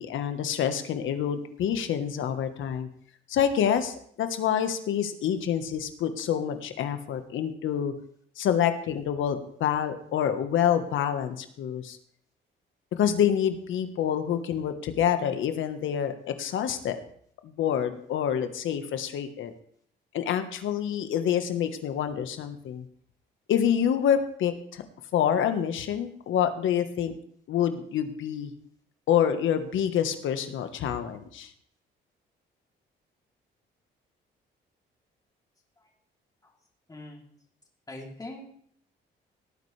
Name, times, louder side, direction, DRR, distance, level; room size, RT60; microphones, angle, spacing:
voice 1, 0.0-2.9 3.3-7.9 8.4-12.0 13.0-17.0 17.4-19.5 20.1-22.8 23.5-24.8 25.1-27.1 27.5-28.5 29.1-31.5, left 9 dB, 80° left, 8 dB, 1.4 m, -27 dB
voice 2, 36.9-37.2 37.9-38.4, left 1 dB, 20° left, -1 dB, 3.3 m, -42 dB
18.0 x 9.2 x 3.4 m, 0.62 s
cardioid pair, 90°, 20 cm